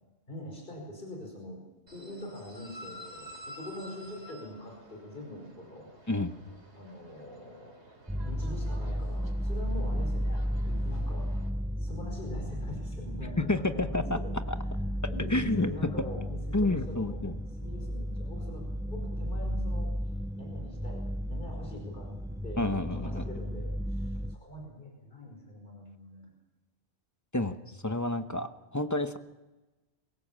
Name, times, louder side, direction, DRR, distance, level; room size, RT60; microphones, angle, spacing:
voice 1, 0.3-1.6 1.9-5.9 6.7-7.7 8.2-11.3 11.8-13.9 14.1-14.3 15.1-17.3 17.6-19.9 20.4-26.3, left 1 dB, 50° left, 1 dB, 5.4 m, -44 dB
sound 1, 1.9-11.5, equal, 75° right, 3.8 m, -51 dB
sound 2, 8.1-24.4, equal, 5° right, 0.4 m, -34 dB
voice 2, 13.5-14.2 14.5-14.6 15.3-15.9 16.5-17.3 22.6-23.2 27.3-27.6 27.8-29.2, left 2 dB, 15° left, 9 dB, 0.9 m, -29 dB
23.0 x 17.0 x 7.5 m, 1.1 s
omnidirectional pair, 1.1 m